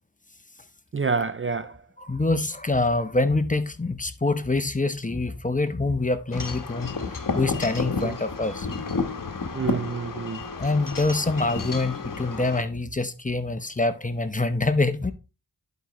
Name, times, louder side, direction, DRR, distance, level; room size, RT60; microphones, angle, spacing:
voice 1, 0.9-1.7 8.0-8.1 9.5-10.4, right 5 dB, 30° right, 0.5 m, -27 dB
voice 2, 2.0-8.7 10.6-15.1, left 2 dB, 20° left, 1.0 m, -25 dB
Wind chime / Wind, 6.3-12.6, left 4 dB, 55° left, 1.4 m, -31 dB
11.0 x 5.1 x 3.2 m
cardioid pair, 45°, 40 cm